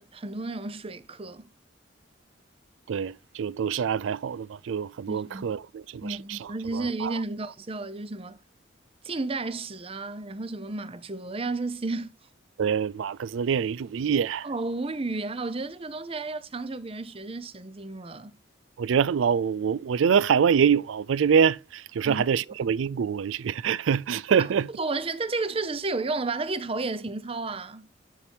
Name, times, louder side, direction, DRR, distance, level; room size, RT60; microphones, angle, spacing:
voice 1, 0.0-1.5 5.1-5.4 6.0-8.4 9.0-12.2 14.4-18.3 22.0-22.3 24.4-24.5 24.8-27.9, right 3 dB, 30° right, 0.7 m, -32 dB
voice 2, 2.9-7.2 12.6-14.5 18.8-24.7, right 7 dB, 80° right, 0.4 m, -25 dB
9.7 x 4.4 x 3.5 m
head